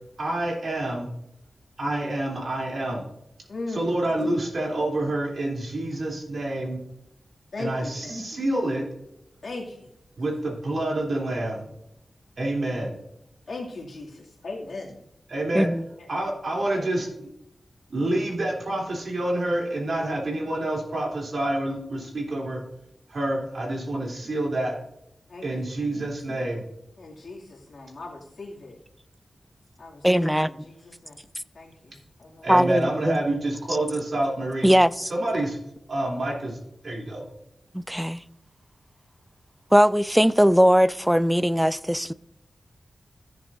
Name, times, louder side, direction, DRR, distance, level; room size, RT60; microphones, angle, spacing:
voice 1, 0.2-1.1 1.8-3.0 3.7-6.8 7.6-8.8 10.2-11.6 12.4-13.0 15.3-15.7 16.1-17.1 17.9-22.6 23.1-24.7 25.4-26.6 32.4-34.7 35.1-35.6 35.9-37.3, right 1 dB, 65° right, 3.2 m, -27 dB
voice 2, 3.5-4.3 7.5-8.1 9.4-9.9 13.5-15.0 16.0-16.1 16.7-16.9 25.3-25.7 27.0-28.8 29.8-31.2 31.5-32.5, left 2 dB, 70° left, 2.5 m, -38 dB
voice 3, 30.0-30.5 32.5-33.2 34.6-35.1 37.7-38.2 39.7-42.1, equal, 5° right, 0.3 m, -20 dB
16.0 x 7.1 x 2.6 m
wide cardioid pair, 95°, 0 cm